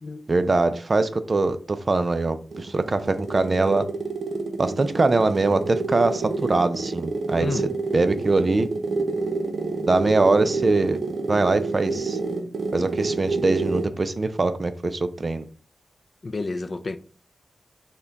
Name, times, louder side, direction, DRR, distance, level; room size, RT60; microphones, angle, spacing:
voice 1, 0.3-3.9 4.6-7.6 7.9-8.7 9.8-11.0 11.3-12.2 12.7-15.5, right 3 dB, 35° right, 0.4 m, -22 dB
sound 1, 2.2-14.0, right 3 dB, 75° right, 0.6 m, -29 dB
voice 2, 7.4-7.7 16.2-17.0, left 3 dB, 40° left, 0.3 m, -30 dB
5.7 x 2.2 x 3.9 m
wide cardioid pair, 140°, 0 cm